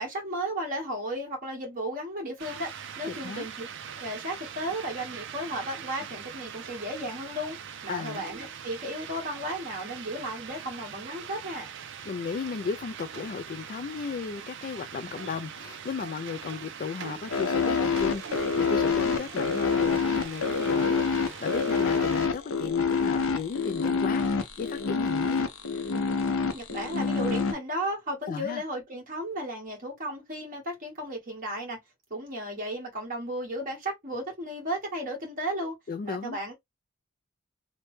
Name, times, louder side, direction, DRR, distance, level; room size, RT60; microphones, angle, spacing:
voice 1, 0.0-3.7 4.0-7.6 7.8-11.7 26.5-31.8 32.1-35.8 36.0-36.5, right 1 dB, 40° right, 1.5 m, -34 dB
sound 1, 2.4-22.3, right 7 dB, 60° right, 0.4 m, -42 dB
voice 2, 3.0-3.5 7.9-8.2 12.1-25.5 28.3-28.6 35.9-36.4, left 5 dB, 45° left, 0.3 m, -35 dB
sound 2, 17.3-27.5, left 5 dB, 90° left, 0.6 m, -26 dB
3.1 x 2.1 x 3.1 m
head